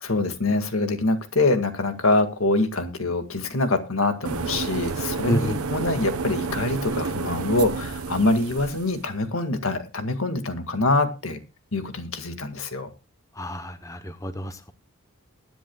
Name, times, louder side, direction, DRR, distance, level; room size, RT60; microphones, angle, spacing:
voice 1, 0.0-11.4 11.7-12.9, left 2 dB, 75° left, 7 dB, 1.9 m, -24 dB
sound 1, 4.2-9.0, right 4 dB, 85° right, 1.0 m, -30 dB
voice 2, 5.3-5.6 13.4-14.7, equal, 15° left, 9 dB, 0.8 m, -29 dB
21.0 x 10.5 x 2.3 m, 0.29 s
head